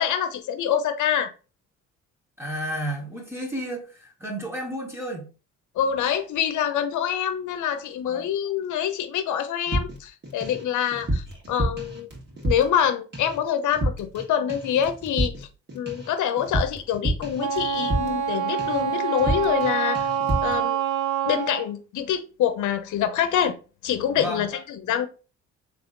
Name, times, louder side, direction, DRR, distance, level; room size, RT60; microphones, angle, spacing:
voice 1, 0.0-1.3 5.8-12.1 12.4-15.3 15.7-20.1 20.4-20.8 21.2-23.5 23.8-25.1, left 9 dB, 75° left, 0.8 m, -25 dB
voice 2, 2.4-5.3 8.1-8.3 9.7-9.8 24.2-24.5, equal, 10° right, 1.5 m, -32 dB
sound 1, 9.7-10.6 10.9-12.9 13.1-13.4 13.7-14.2 14.5-18.3 18.6-18.9 19.2-19.7 19.9-20.6, right 1 dB, 35° right, 1.8 m, -29 dB
Wind instrument woodwind instrument, 17.4-21.7, right 8 dB, 80° right, 0.5 m, -26 dB
3.5 x 3.2 x 3.8 m
cardioid pair, 90°, 30 cm